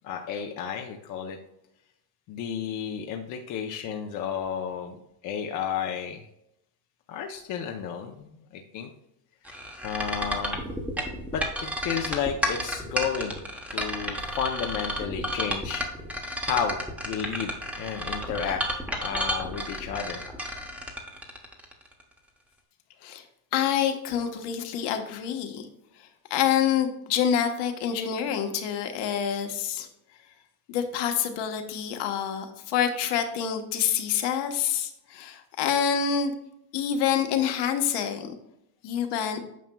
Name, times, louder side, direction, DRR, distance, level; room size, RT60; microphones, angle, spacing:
voice 1, 0.0-1.4 2.3-5.0 5.2-6.2 7.1-8.9 9.8-10.6 11.3-11.4 11.8-13.4 13.7-15.9 16.4-16.8 17.0-17.5 17.8-18.6 19.0-20.2, left 7 dB, 40° left, 3 dB, 0.6 m, -32 dB
sound 1, 9.5-22.0, equal, 5° right, 0.9 m, -31 dB
voice 2, 23.5-25.7 26.3-29.9 30.7-36.3 36.7-38.3 38.8-39.4, left 8 dB, 55° left, 6 dB, 1.1 m, -27 dB
9.2 x 5.7 x 2.2 m, 0.81 s
cardioid pair, 145°, 49 cm